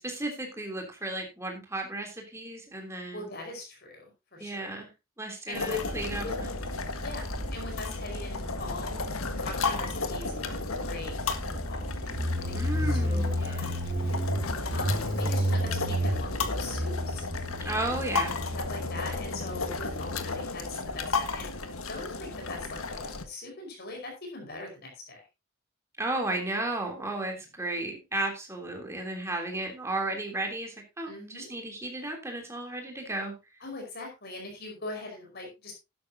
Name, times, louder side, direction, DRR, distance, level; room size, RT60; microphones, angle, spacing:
voice 1, 0.0-3.2 4.4-4.9 5.2-6.5 12.5-13.9 17.6-18.3 26.0-33.3, right 2 dB, 15° right, 2 dB, 3.2 m, -34 dB
voice 2, 3.1-4.7 5.5-5.8 6.2-6.5 6.9-9.0 9.4-11.8 12.4-12.5 12.9-13.8 14.7-17.2 17.6-18.0 18.7-25.2 31.0-31.5 33.6-35.7, left 3 dB, 50° left, 2 dB, 5.1 m, -41 dB
sound 1, 5.5-23.2, left 4 dB, 85° left, 1.5 m, -34 dB
Motorcycle, 5.7-22.9, equal, 45° right, 5.9 m, -33 dB
12.0 x 11.5 x 2.8 m, 0.25 s
head